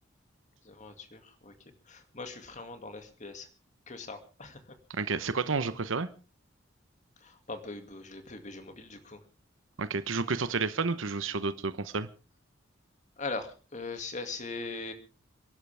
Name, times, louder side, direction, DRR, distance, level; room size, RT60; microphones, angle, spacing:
voice 1, 0.6-1.5 1.9-3.5 3.9-4.8 7.2-9.2 13.2-14.9, left 3 dB, 40° left, 7 dB, 2.3 m, -41 dB
voice 2, 4.9-6.1 9.8-12.1, right 4 dB, 90° right, 13 dB, 1.0 m, -30 dB
28.5 x 11.5 x 3.5 m, 0.35 s
head